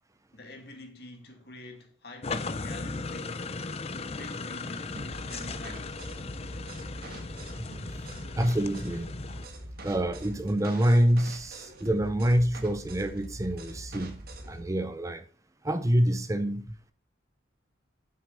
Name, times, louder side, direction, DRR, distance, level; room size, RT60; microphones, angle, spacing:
voice 1, 0.3-3.4 4.1-6.0, left 1 dB, 55° left, 2.1 m, -47 dB
sound 1, 2.2-9.5, left 3 dB, 35° left, 0.5 m, -37 dB
sound 2, 5.0-14.6, right 1 dB, 50° right, 1.5 m, -43 dB
voice 2, 8.4-9.1 9.8-15.2 15.6-16.9, equal, 15° right, 0.5 m, -26 dB
7.8 x 6.5 x 5.2 m
head